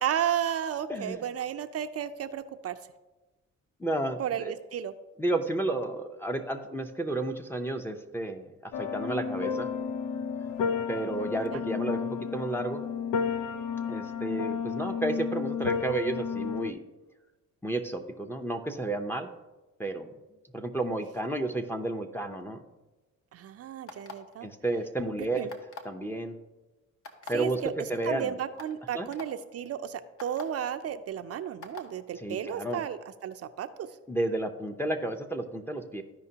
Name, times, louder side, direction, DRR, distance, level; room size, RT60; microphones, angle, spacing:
voice 1, 0.0-2.8 4.2-4.9 11.5-11.6 23.3-24.5 25.4-25.5 27.3-27.7 28.0-33.9, right 9 dB, 55° right, 9 dB, 0.5 m, -33 dB
voice 2, 0.9-1.2 3.8-4.5 5.2-9.7 10.9-12.8 13.9-16.8 17.6-19.3 19.8-20.1 20.5-22.6 24.4-25.5 25.8-26.4 27.3-28.3 28.9-29.1 32.2-32.8 34.1-36.0, right 2 dB, 5° left, 3 dB, 0.6 m, -32 dB
sound 1, 8.7-16.7, left 6 dB, 85° left, 0.6 m, -32 dB
sound 2, 23.9-24.3 25.5-25.9 27.0-27.3 28.1-28.2 28.6-28.7 29.1-29.3 30.2-30.4 31.6-31.9, left 4 dB, 45° left, 1.2 m, -42 dB
13.5 x 5.1 x 2.8 m, 1.1 s
cardioid pair, 90°, 30 cm